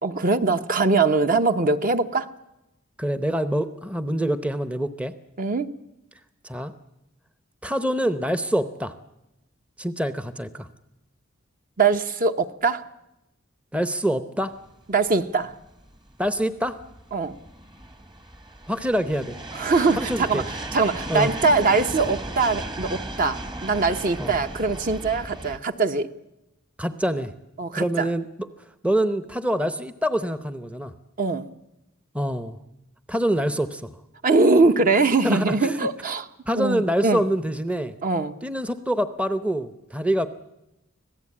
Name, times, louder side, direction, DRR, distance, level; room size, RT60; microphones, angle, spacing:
voice 1, 0.0-2.3 5.4-5.7 11.8-12.9 14.9-15.5 17.1-17.3 19.5-20.4 20.7-26.1 27.6-28.1 31.2-31.5 34.2-36.2 36.5-37.2 38.0-38.3, right 3 dB, 40° right, 0.9 m, -22 dB
voice 2, 3.0-5.1 6.4-6.7 7.6-8.9 9.8-10.7 13.7-14.6 16.2-16.8 18.7-19.4 20.0-20.5 21.1-21.3 24.2-24.4 26.8-27.3 27.7-28.3 28.8-30.9 32.1-32.6 33.1-33.9 35.2-35.9 36.5-37.9 38.4-40.3, equal, 5° right, 0.7 m, -25 dB
sound 1, 14.7-25.6, right 1 dB, 20° right, 1.2 m, -36 dB
25.5 x 17.0 x 8.6 m
head